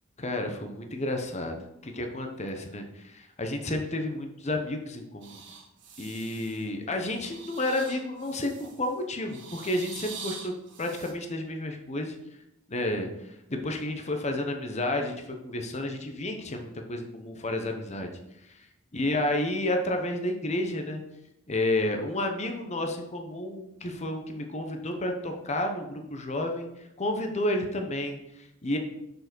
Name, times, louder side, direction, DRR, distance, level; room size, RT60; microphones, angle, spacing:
voice 1, 0.2-1.6 1.8-5.4 6.0-10.5 10.8-12.2 12.7-18.1 18.4-18.6 18.9-21.0 21.5-26.7 27.0-28.8, left 1 dB, 35° left, 4 dB, 0.9 m, -31 dB
sound 1, 5.2-6.7 7.0-8.9 9.3-11.1, right 5 dB, 65° right, 1.5 m, -44 dB
6.6 x 4.7 x 6.2 m, 0.85 s
head